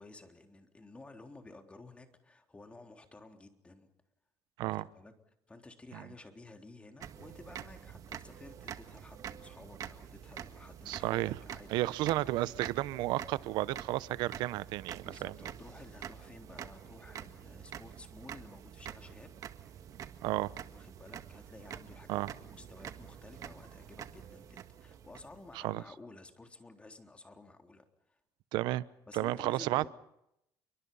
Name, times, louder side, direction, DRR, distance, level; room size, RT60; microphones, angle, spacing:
voice 1, 0.0-3.9 4.7-5.1 5.5-12.1 15.0-19.3 20.7-28.2 29.1-29.9, left 2 dB, 15° left, 3.7 m, -53 dB
sound 1, 7.0-25.8, right 9 dB, 50° right, 1.8 m, -47 dB
voice 2, 10.9-11.4 11.7-15.3 20.2-20.5 22.1-22.3 25.5-25.8 28.5-28.8 29.1-29.9, right 17 dB, 75° right, 0.9 m, -32 dB
29.5 x 24.0 x 5.6 m
cardioid pair, 115°, 8 cm